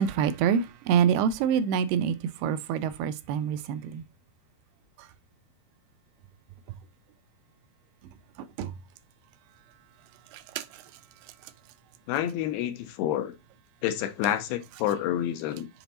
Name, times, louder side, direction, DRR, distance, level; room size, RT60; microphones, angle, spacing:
voice 1, 0.0-4.0 8.4-8.7 10.3-10.8 11.4-11.5, right 8 dB, 85° right, 2.5 m, -26 dB
voice 2, 12.1-13.4 13.8-15.7, left 11 dB, 80° left, 2.8 m, -28 dB
7.0 x 3.9 x 4.1 m
omnidirectional pair, 4.6 m